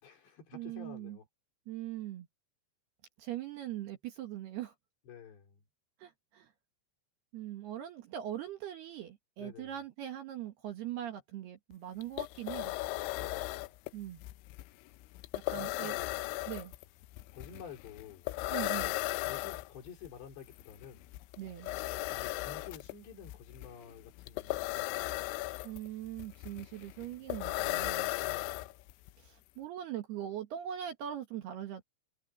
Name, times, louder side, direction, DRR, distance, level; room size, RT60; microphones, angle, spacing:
voice 1, 0.0-1.3 5.1-5.6 9.4-9.7 13.1-13.7 15.5-16.2 17.3-18.3 19.2-21.1 22.1-25.2 28.2-28.7, left 7 dB, 60° left, 5.7 m, -50 dB
voice 2, 0.5-1.2 1.7-2.3 3.2-4.7 6.0-6.5 7.3-12.7 13.9-14.2 15.3-15.9 16.5-16.7 18.5-19.0 21.4-21.7 25.6-28.1 29.2-31.8, right 11 dB, 65° right, 3.0 m, -41 dB
sound 1, 11.7-11.8 12.0-29.1, left 20 dB, 80° left, 2.8 m, -37 dB
omnidirectional pair, 5.9 m